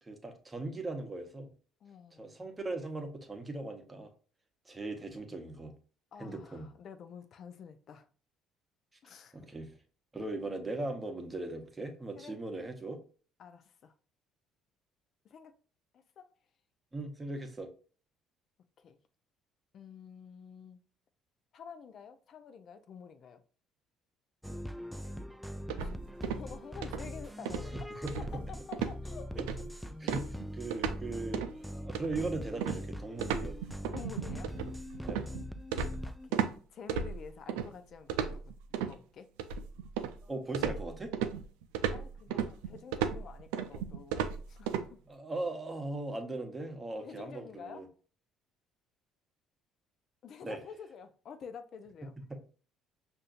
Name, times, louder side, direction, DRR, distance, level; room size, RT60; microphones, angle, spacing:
voice 1, 0.0-1.5 2.2-4.1 4.7-5.7 6.2-6.7 9.3-9.7 10.1-13.0 16.9-17.7 27.7-28.1 29.3-29.5 29.7-33.6 35.0-35.3 40.2-41.1 42.3-42.4 45.1-47.9 50.4-50.6 52.3-52.4, right 2 dB, 25° right, 1.0 m, -39 dB
voice 2, 1.8-2.3 6.1-8.1 9.0-9.5 12.2-12.4 13.4-13.9 15.2-15.6 15.9-16.3 18.8-19.0 19.7-20.8 21.5-23.4 25.8-25.9 26.2-27.9 28.3-29.3 30.1-30.2 33.9-34.5 36.0-38.4 38.7-39.3 41.9-45.0 47.0-47.9 50.2-52.1, left 6 dB, 55° left, 0.5 m, -49 dB
sound 1, 24.4-36.3, equal, ahead, 0.3 m, -42 dB
sound 2, 25.7-26.5 26.8-27.1 27.5-27.7 28.1-28.5 28.7-29.0 29.4-29.7 30.1-31.0 31.3-31.6 31.9-36.5 36.9-37.7 38.1-38.9 39.4-40.2 40.5-44.9, right 8 dB, 85° right, 0.4 m, -35 dB
5.4 x 2.6 x 2.5 m
hypercardioid pair, 65°, 0 cm